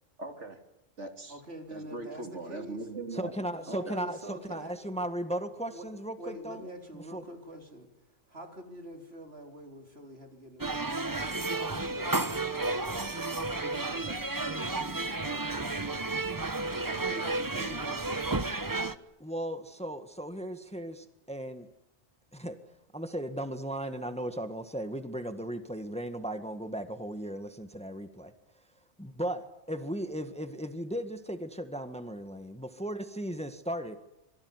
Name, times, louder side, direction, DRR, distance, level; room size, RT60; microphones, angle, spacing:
voice 1, 0.2-0.6 1.0-1.4 1.7-4.0, right 2 dB, 75° right, 5 dB, 3.2 m, -41 dB
voice 2, 1.3-2.8 3.5-4.7 5.7-5.8 6.2-7.9 8.3-11.1 11.5-13.2 13.6-16.1 16.8-18.9, right 1 dB, 60° right, 4 dB, 4.1 m, -46 dB
voice 3, 3.1-6.6 6.9-7.2 18.6-18.8 19.2-21.7 22.3-22.6 22.9-28.3 29.0-34.0, right 1 dB, 5° left, 8 dB, 1.6 m, -36 dB
sound 1, 10.6-18.9, right 2 dB, 20° right, 1.0 m, -32 dB
26.0 x 23.0 x 9.7 m, 0.90 s
omnidirectional pair, 1.2 m